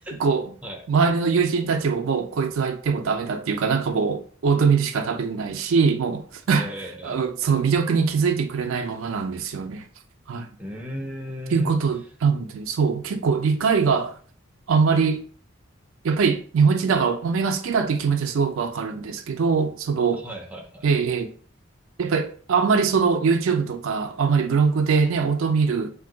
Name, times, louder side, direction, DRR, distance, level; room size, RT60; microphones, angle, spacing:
voice 1, 0.9-6.7 7.0-9.8 10.3-10.5 11.5-14.1 14.7-15.3 16.0-20.2 20.8-21.3 22.0-25.9, right 5 dB, 80° right, 0.4 m, -22 dB
voice 2, 6.5-7.2 10.6-11.7 20.1-20.9, equal, 5° right, 0.4 m, -35 dB
2.6 x 2.2 x 3.7 m
head